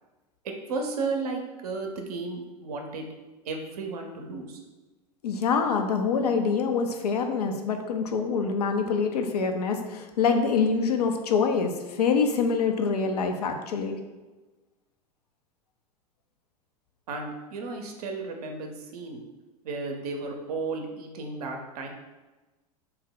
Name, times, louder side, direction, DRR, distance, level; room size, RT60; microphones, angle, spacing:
voice 1, 0.4-3.1 3.4-4.6 17.1-19.2 19.6-21.9, right 3 dB, 70° right, 3 dB, 0.5 m, -34 dB
voice 2, 5.2-14.0, left 5 dB, 75° left, 5 dB, 0.4 m, -25 dB
2.7 x 2.0 x 3.8 m, 1.2 s
hypercardioid pair, 90°, 20 cm